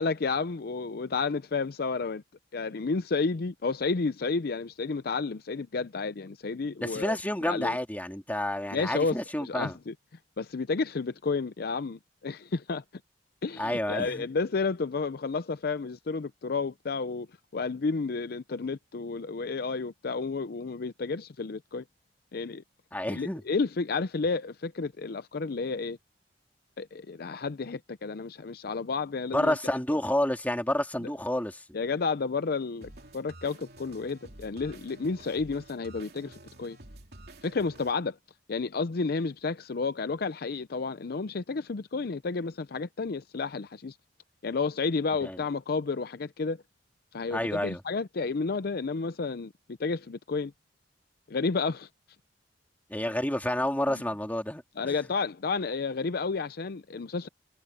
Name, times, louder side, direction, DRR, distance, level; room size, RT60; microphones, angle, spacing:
voice 1, 0.0-2.2 2.5-7.2 7.5-7.8 8.7-9.9 10.4-12.8 13.4-17.3 17.5-21.8 22.3-22.6 23.1-26.0 26.8-29.6 31.7-36.8 37.4-38.2 38.5-44.0 44.4-46.6 47.1-49.5 49.8-50.5 51.3-51.9 54.8-57.3, left 4 dB, 60° left, 0.5 m, -31 dB
voice 2, 6.8-9.8 13.6-14.3 22.9-23.4 29.3-31.6 45.2-45.4 47.3-47.8 52.9-55.0, left 1 dB, 10° left, 2.6 m, -29 dB
sound 1, 32.8-37.9, right 2 dB, 60° right, 2.8 m, -50 dB
head